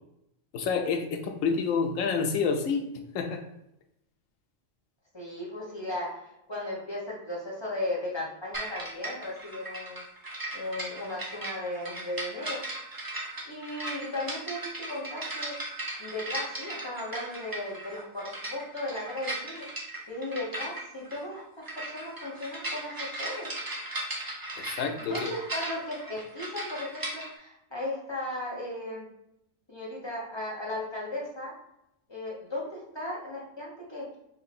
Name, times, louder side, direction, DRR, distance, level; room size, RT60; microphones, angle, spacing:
voice 1, 0.5-2.8 3.1-3.4 24.6-25.3, left 5 dB, 90° left, 4 dB, 1.0 m, -28 dB
voice 2, 5.1-6.2 6.5-10.0 10.5-12.6 13.4-15.5 16.0-19.7 20.1-21.5 21.7-23.5 25.0-29.1 29.7-31.5 32.1-34.1, left 1 dB, 25° left, -5 dB, 1.0 m, -36 dB
sound 1, 8.5-27.3, right 1 dB, 25° right, 0.4 m, -37 dB
3.2 x 2.8 x 4.1 m, 0.81 s
omnidirectional pair, 1.3 m